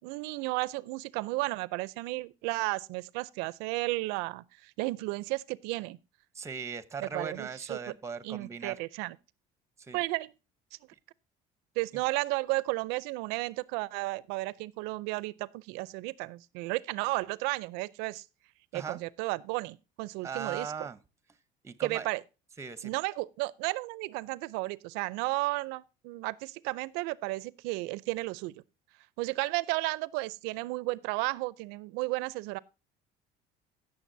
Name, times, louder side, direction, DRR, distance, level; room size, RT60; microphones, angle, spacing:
voice 1, 0.0-6.0 7.0-7.8 8.2-9.2 9.9-10.3 11.8-18.2 18.7-20.9 21.8-22.2 22.8-28.6 29.2-32.6, right 22 dB, 90° right, 0.5 m, -33 dB
voice 2, 6.3-8.8 9.8-10.0 10.9-11.0 18.7-19.0 20.2-21.0 21.6-22.1 22.6-22.9, right 5 dB, 15° right, 0.8 m, -39 dB
16.5 x 6.8 x 2.6 m
cardioid pair, 125°, 16 cm